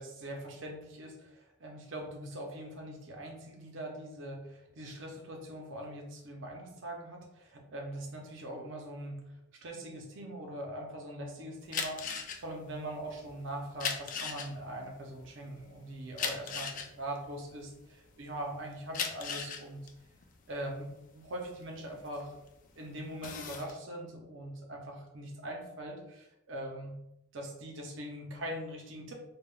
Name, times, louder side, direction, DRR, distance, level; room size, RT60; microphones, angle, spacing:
voice 1, 0.0-9.2 9.6-12.0 12.4-16.7 17.0-19.9 20.5-22.3 22.8-27.0 27.3-29.2, right 1 dB, 70° right, 1 dB, 0.6 m, -42 dB
sound 1, 11.6-18.2 18.7-22.6 23.0-23.7, left 6 dB, 40° left, 0.3 m, -38 dB
3.3 x 2.2 x 2.2 m, 0.85 s
head